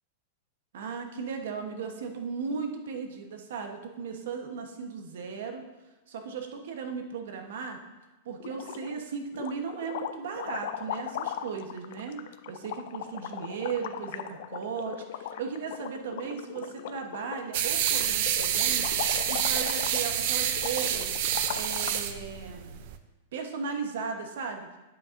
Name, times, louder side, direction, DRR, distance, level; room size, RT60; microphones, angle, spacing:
voice 1, 0.7-5.6 6.1-7.8 8.2-18.9 19.3-21.2 21.5-22.7 23.3-24.7, right 5 dB, 70° right, 4 dB, 1.0 m, -36 dB
sound 1, 8.4-9.0 9.3-22.1, left 10 dB, 55° left, 0.4 m, -39 dB
sound 2, 17.5-23.0, right 10 dB, 50° right, 0.5 m, -28 dB
9.1 x 7.8 x 2.6 m, 1.1 s
supercardioid pair, 165°, 0 cm